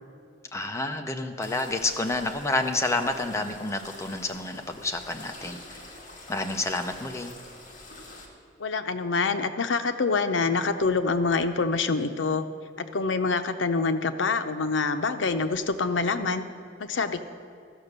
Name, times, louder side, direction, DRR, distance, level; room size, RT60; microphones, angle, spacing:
voice 1, 0.5-5.9 6.3-7.3, left 2 dB, 15° left, 4 dB, 0.7 m, -29 dB
sound 1, 1.4-8.3, left 2 dB, 45° left, 1.8 m, -46 dB
voice 2, 8.6-12.4 12.8-16.4 16.8-17.2, left 4 dB, 90° left, 8 dB, 0.6 m, -26 dB
14.0 x 5.9 x 6.6 m, 2.3 s
head